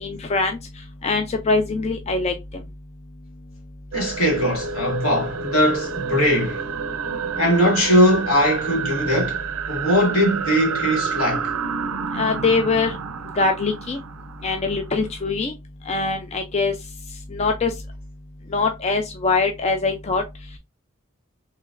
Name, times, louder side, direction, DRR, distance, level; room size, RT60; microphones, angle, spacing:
voice 1, 0.0-0.6 1.0-2.3 12.1-12.9 13.4-14.0 14.4-15.5 15.9-16.7 17.3-17.7 18.5-20.2, left 3 dB, 30° left, 0.4 m, -22 dB
voice 2, 3.9-6.6 7.4-11.5, equal, 80° left, 2.0 m, -20 dB
sound 1, 3.9-15.3, right 6 dB, 85° right, 0.5 m, -29 dB
4.0 x 3.2 x 2.4 m
head